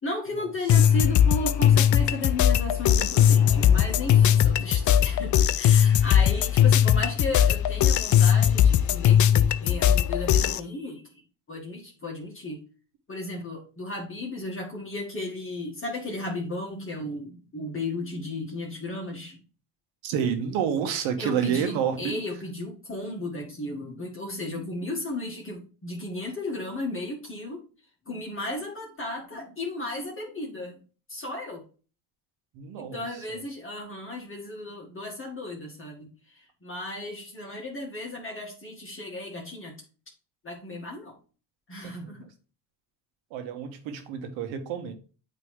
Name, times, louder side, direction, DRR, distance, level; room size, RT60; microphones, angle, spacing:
voice 1, 0.0-11.2 11.5-12.6 13.1-19.4 21.2-27.7 28.1-30.8 31.1-31.6 32.8-39.8 40.4-41.1 41.7-42.3, left 2 dB, 25° left, -2 dB, 2.0 m, -35 dB
sound 1, 0.7-10.6, left 9 dB, 40° left, 0.5 m, -20 dB
voice 2, 20.0-22.2 32.5-33.0 33.3-33.4 42.0-42.1 43.3-44.9, right 8 dB, 75° right, 6 dB, 1.4 m, -29 dB
8.8 x 3.4 x 3.6 m, 0.36 s
supercardioid pair, 80°, 47 cm